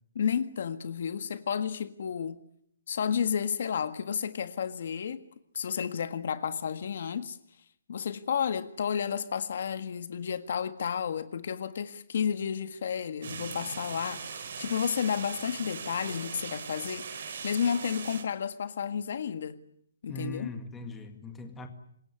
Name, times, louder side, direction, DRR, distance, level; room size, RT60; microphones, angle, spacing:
voice 1, 0.2-2.4 2.9-5.2 5.5-7.4 7.9-19.6 20.0-20.5, left 7 dB, 50° left, 1.7 m, -32 dB
sound 1, 13.2-18.2, right 6 dB, 50° right, 4.1 m, -40 dB
voice 2, 20.1-21.7, left 2 dB, 5° left, 1.9 m, -40 dB
26.0 x 21.5 x 9.7 m
hypercardioid pair, 170°, 0 cm